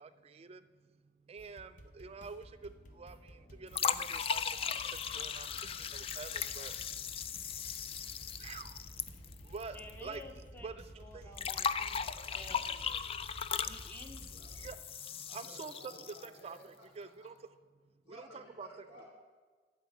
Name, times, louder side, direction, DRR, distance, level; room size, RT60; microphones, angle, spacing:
voice 1, 0.0-10.2 10.6-11.3 11.9-12.0 13.1-13.7 14.5-15.9 16.2-17.4 18.1-18.7, right 5 dB, 35° right, 11 dB, 0.4 m, -49 dB
sound 1, 1.4-14.8, equal, 50° left, 0.8 m, -53 dB
sound 2, 1.8-13.3, right 1 dB, 65° left, 1.2 m, -68 dB
sound 3, 3.7-9.9 10.1-10.2 11.4-16.4, left 7 dB, 35° left, 0.3 m, -37 dB
voice 2, 9.7-12.9 13.6-14.3, left 2 dB, 10° left, 5 dB, 0.7 m, -52 dB
voice 3, 12.2-12.9 14.3-14.7 15.1-17.3 18.0-19.1, left 1 dB, 85° left, -2 dB, 3.5 m, -57 dB
12.0 x 5.0 x 8.2 m, 1.5 s
head